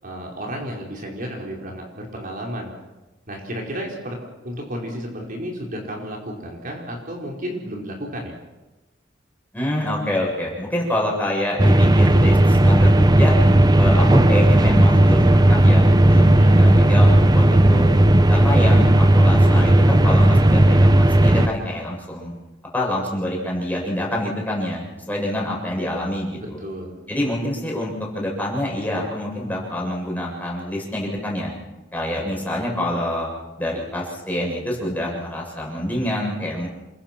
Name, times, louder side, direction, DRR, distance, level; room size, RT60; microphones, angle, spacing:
voice 1, 0.0-2.7 3.3-4.2 4.4-8.3 16.1-16.5 26.4-26.9, equal, 45° right, 0 dB, 4.7 m, -32 dB
voice 2, 9.5-13.3 13.8-16.3 16.6-17.9 18.3-22.3 22.7-26.6 27.1-31.5 31.9-33.3 33.6-36.7, left 1 dB, 10° left, -2 dB, 7.4 m, -26 dB
sound 1, 11.6-21.5, right 1 dB, 20° right, 0.8 m, -14 dB
28.0 x 23.5 x 6.0 m, 1.1 s
head